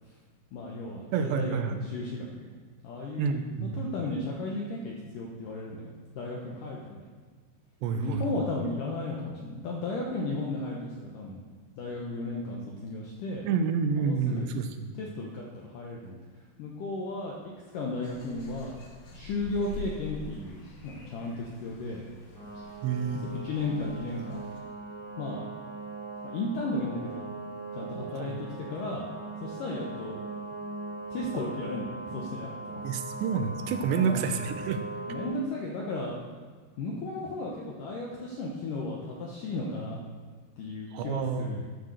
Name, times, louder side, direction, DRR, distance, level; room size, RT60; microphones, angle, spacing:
voice 1, 0.5-2.5 2.8-5.8 6.2-7.0 7.9-11.4 11.8-13.5 14.0-14.5 15.0-16.2 16.6-17.4 17.7-18.7 19.1-22.0 23.1-24.5 25.2-25.4 26.2-27.3 27.7-29.1 29.4-30.2 30.5-30.6 31.1-32.8 33.9-34.3 35.1-36.2 36.8-40.0 40.6-41.6, left 2 dB, 80° left, -2 dB, 1.9 m, -35 dB
voice 2, 1.1-1.8 3.2-3.8 7.8-8.3 13.5-14.9 22.8-23.2 28.2-28.4 32.8-34.8 40.9-41.6, right 6 dB, 85° right, 8 dB, 2.8 m, -29 dB
sound 1, 18.0-24.6, left 3 dB, 55° left, 2.2 m, -46 dB
sound 2, 22.3-35.3, right 3 dB, 25° right, 3.1 m, -40 dB
12.0 x 6.6 x 6.4 m, 1.5 s
omnidirectional pair, 5.1 m